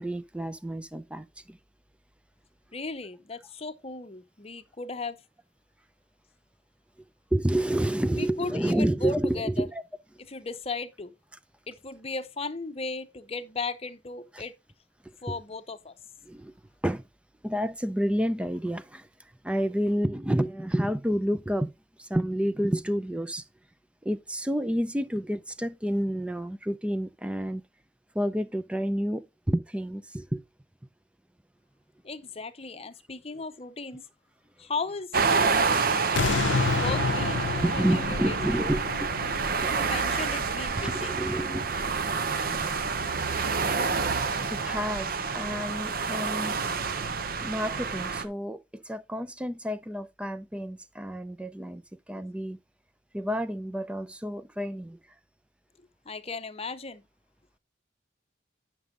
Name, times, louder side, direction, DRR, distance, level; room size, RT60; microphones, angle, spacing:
voice 1, 0.0-1.6 7.3-9.8 14.3-14.4 15.0-15.4 16.2-16.5 16.8-17.0 17.4-19.1 19.4-21.7 22.0-23.4 24.0-27.6 28.1-30.4 37.6-39.1 39.6-39.7 40.7-41.7 43.3-43.4 44.5-46.6 47.4-51.8 52.1-52.6 53.1-55.0, equal, 5° right, 0.4 m, -29 dB
voice 2, 2.7-5.2 8.1-9.7 10.3-11.1 11.7-14.5 15.2-15.9 32.0-34.0 34.6-35.2 36.7-37.5 37.7-38.5 39.6-41.2 52.1-52.3 56.1-57.0, left 3 dB, 35° left, 0.8 m, -36 dB
sound 1, 35.1-48.2, right 4 dB, 50° right, 0.8 m, -28 dB
sound 2, 36.1-41.3 41.7-41.8, left 5 dB, 85° left, 0.5 m, -30 dB
9.5 x 6.1 x 3.7 m
head